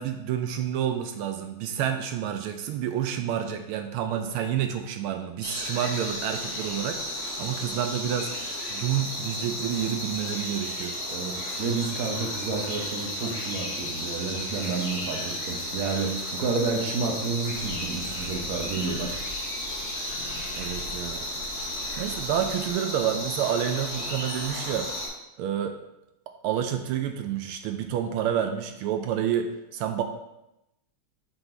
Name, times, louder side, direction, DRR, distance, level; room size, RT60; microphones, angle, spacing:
voice 1, 0.0-10.9 20.6-21.2 22.0-24.9 25.4-25.8 26.3-30.0, right 9 dB, 80° right, 6 dB, 1.4 m, -29 dB
sound 1, 5.4-25.1, left 1 dB, 50° left, 1.8 m, -33 dB
voice 2, 11.1-19.2, right 4 dB, 55° right, 1 dB, 1.0 m, -30 dB
sound 2, 17.5-22.7, left 1 dB, 70° left, 3.4 m, -43 dB
7.0 x 4.0 x 3.9 m, 0.89 s
omnidirectional pair, 2.4 m